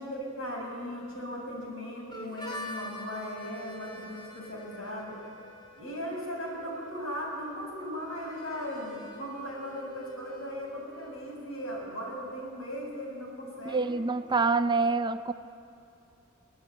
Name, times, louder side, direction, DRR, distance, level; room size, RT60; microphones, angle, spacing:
voice 1, 0.0-5.2 5.8-13.9, equal, 80° left, -1 dB, 7.0 m, -38 dB
Harmonica, 2.1-11.7, left 1 dB, 20° left, 3.0 m, -47 dB
voice 2, 13.7-15.3, right 4 dB, 20° right, 10 dB, 0.6 m, -26 dB
23.5 x 17.0 x 9.6 m, 2.9 s
head